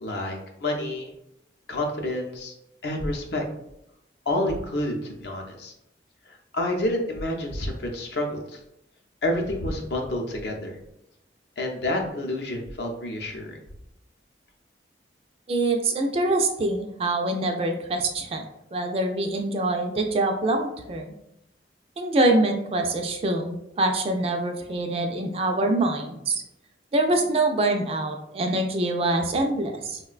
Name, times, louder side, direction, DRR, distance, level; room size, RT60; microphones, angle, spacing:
voice 1, 0.0-1.1 1.7-2.5 2.8-3.4 4.3-5.7 6.3-8.6 9.2-10.8 11.6-13.6, left 1 dB, 65° left, 1 dB, 0.5 m, -29 dB
voice 2, 15.5-18.5 18.7-21.1 22.0-26.4 26.9-30.0, right 2 dB, 35° right, 3 dB, 0.3 m, -25 dB
3.7 x 2.1 x 2.3 m, 0.82 s
head